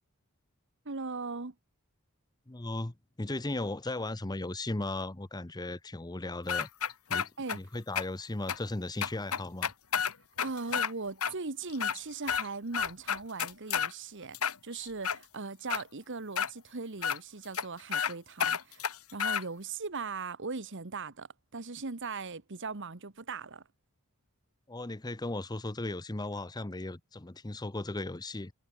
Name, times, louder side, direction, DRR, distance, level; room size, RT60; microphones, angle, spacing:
voice 1, 0.8-1.5 7.4-7.6 10.4-23.6, right 4 dB, 55° right, 1.3 m, -39 dB
voice 2, 2.5-6.7 7.1-9.7 24.7-28.5, left 2 dB, 20° left, 0.8 m, -36 dB
sound 1, 6.5-7.6 8.0-8.1 8.5-8.6 9.0-10.9 11.2-11.3 11.7-12.5 12.7-13.9 14.3-15.2 15.7-15.8 16.4-16.5 17.0-17.2 17.5-17.6 17.9-18.1 18.4-19.4, left 7 dB, 80° left, 1.9 m, -30 dB
head